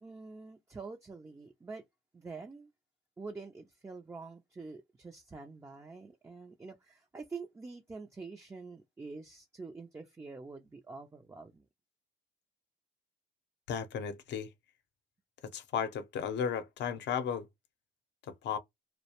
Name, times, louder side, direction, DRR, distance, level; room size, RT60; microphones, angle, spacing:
voice 1, 0.0-1.8 2.1-2.7 3.2-11.7, right 4 dB, 15° right, 0.4 m, -46 dB
voice 2, 13.7-14.5 15.5-17.5 18.3-18.6, left 7 dB, 60° left, 0.7 m, -34 dB
2.3 x 2.1 x 2.8 m
cardioid pair, 105°, 20 cm